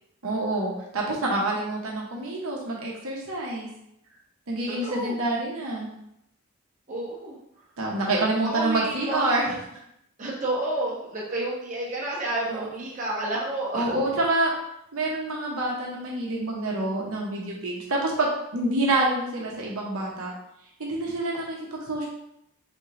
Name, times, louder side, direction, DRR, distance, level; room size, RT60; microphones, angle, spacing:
voice 1, 0.2-3.7 4.5-5.9 7.8-9.5 12.5-12.7 13.7-14.5 14.9-20.3 20.8-22.1, right 2 dB, 75° right, -3 dB, 0.9 m, -27 dB
voice 2, 4.8-5.2 6.9-7.4 8.4-9.6 10.2-13.9, right 1 dB, 35° right, -6 dB, 1.0 m, -30 dB
3.6 x 3.2 x 3.8 m, 0.79 s
head